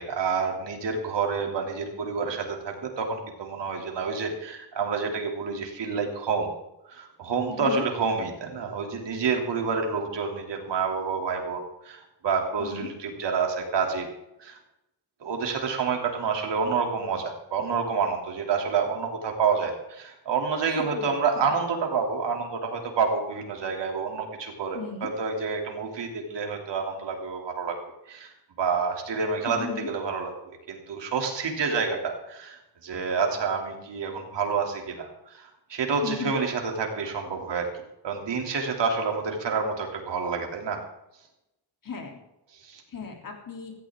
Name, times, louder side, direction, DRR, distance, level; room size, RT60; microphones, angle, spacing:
voice 1, 0.0-6.5 6.9-14.1 14.4-14.6 15.2-27.7 28.1-28.3 28.6-37.7 38.0-40.8 42.6-42.8, right 5 dB, 85° right, 2 dB, 3.2 m, -28 dB
voice 2, 7.5-7.8 12.6-12.9 20.8-21.5 24.7-25.1 29.5-29.9 36.0-36.4 41.8-42.2 42.9-43.7, left 5 dB, 50° left, 2 dB, 3.5 m, -35 dB
17.0 x 15.5 x 3.8 m, 0.89 s
wide cardioid pair, 170°, 42 cm